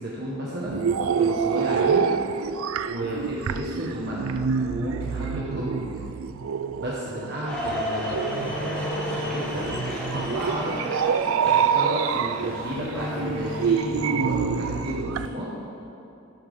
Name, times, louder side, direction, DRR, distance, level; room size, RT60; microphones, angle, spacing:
voice 1, 0.0-2.1 2.9-6.1 6.8-9.7 10.1-10.9 11.4-15.5, equal, 50° right, -5 dB, 1.2 m, -32 dB
sound 1, 0.7-15.3, right 6 dB, 85° right, 0.3 m, -27 dB
sound 2, 7.5-13.8, equal, 5° left, 1.3 m, -33 dB
sound 3, 8.4-14.3, left 2 dB, 70° left, 1.0 m, -37 dB
12.5 x 5.7 x 5.4 m, 2.8 s
head